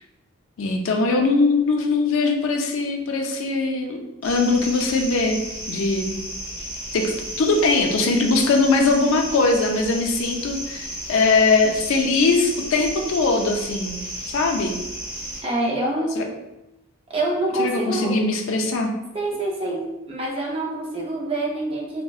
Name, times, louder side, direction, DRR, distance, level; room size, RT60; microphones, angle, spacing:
voice 1, 0.6-5.4 5.7-6.2 6.9-14.0 14.3-14.8 16.2-16.3 17.6-18.9, left 3 dB, 65° left, 3 dB, 0.4 m, -21 dB
sound 1, 4.2-15.4, right 1 dB, 5° right, 0.9 m, -34 dB
voice 2, 15.4-16.2 17.1-18.1 19.1-22.0, right 2 dB, 25° right, -3 dB, 0.5 m, -26 dB
3.6 x 2.0 x 2.3 m, 0.95 s
head